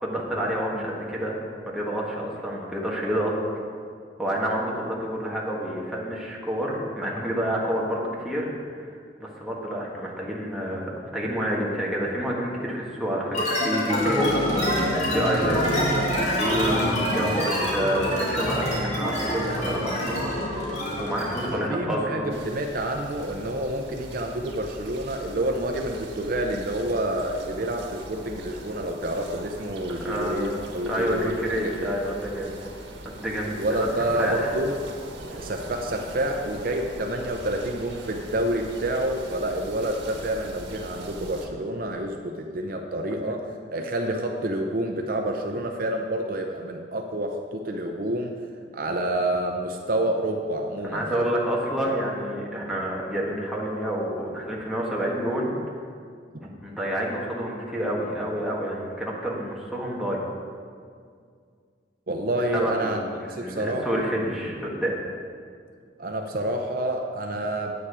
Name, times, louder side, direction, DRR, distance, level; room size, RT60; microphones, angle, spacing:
voice 1, 0.0-1.4 1.7-3.3 4.2-8.5 8.7-14.4 15.1-15.8 16.4-20.6 21.0-22.3 29.9-30.5 30.8-32.5 33.2-33.9 34.2-34.5 43.2-43.3 50.8-55.5 56.6-60.2 62.5-64.9, equal, 5° right, -5 dB, 1.6 m, -28 dB
sound 1, 13.3-21.6, equal, 40° left, 2.1 m, -25 dB
voice 2, 21.4-31.9 33.6-34.7 35.3-48.4 48.7-51.3 51.8-51.9 62.1-63.0 63.3-64.0 66.0-67.7, right 1 dB, 50° right, 3 dB, 0.6 m, -28 dB
sound 2, 22.3-41.5, right 1 dB, 90° right, 1.4 m, -41 dB
9.4 x 8.6 x 4.9 m, 2.1 s
head